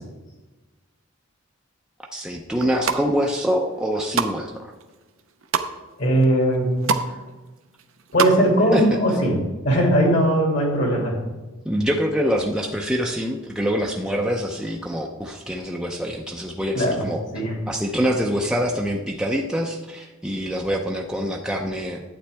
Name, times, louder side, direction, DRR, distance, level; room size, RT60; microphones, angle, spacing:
voice 1, 2.1-4.7 8.7-8.9 11.6-17.2 17.7-22.0, equal, 5° right, 0 dB, 0.5 m, -25 dB
sound 1, 2.5-3.0 3.6-4.4 4.8-5.7 6.2-6.3 6.5-7.1 7.4-8.4 8.7-8.8, right 5 dB, 70° right, 0.6 m, -25 dB
voice 2, 6.0-6.9 8.1-11.2 16.7-17.0 17.3-17.6, right 1 dB, 60° left, -1 dB, 2.5 m, -19 dB
11.5 x 8.7 x 3.4 m, 1.2 s
head